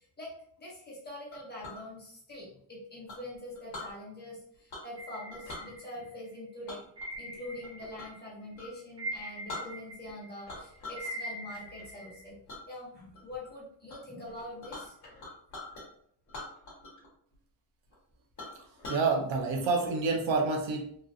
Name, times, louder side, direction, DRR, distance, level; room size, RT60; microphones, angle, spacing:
voice 1, 0.6-6.8 7.1-12.4 12.7-15.0, left 1 dB, 20° left, -6 dB, 1.0 m, -44 dB
Chink clink, 1.3-1.8 3.1-3.9 4.7-5.0 5.3-5.7 6.7-8.2 8.5-8.7 9.2-9.3 9.5-10.1 10.5-11.1 11.5-11.8 12.5-12.6 13.1-13.5 13.9-14.0 14.2-15.9 16.3-17.1 17.3-17.4 17.9-18.0 18.4-19.1, left 2 dB, 40° left, 1.3 m, -43 dB
sound 1, 5.0-6.3 7.0-8.3 8.5-12.3, right 1 dB, 10° right, 0.3 m, -42 dB
voice 2, 18.9-21.0, right 4 dB, 90° right, 1 dB, 0.8 m, -28 dB
3.1 x 2.4 x 2.5 m, 0.66 s
wide cardioid pair, 170°, 45 cm